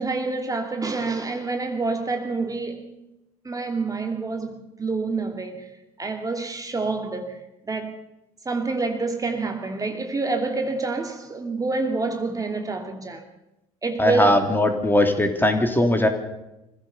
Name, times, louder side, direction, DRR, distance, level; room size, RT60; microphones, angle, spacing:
voice 1, 0.0-3.0 3.4-5.7 6.0-7.4 7.6-8.0 8.4-13.2 13.8-14.5, right 3 dB, 20° right, 2.6 m, -27 dB
voice 2, 14.0-16.1, left 1 dB, 10° left, 3.1 m, -19 dB
25.0 x 16.5 x 6.9 m
figure-of-eight pair, 60°, 19 cm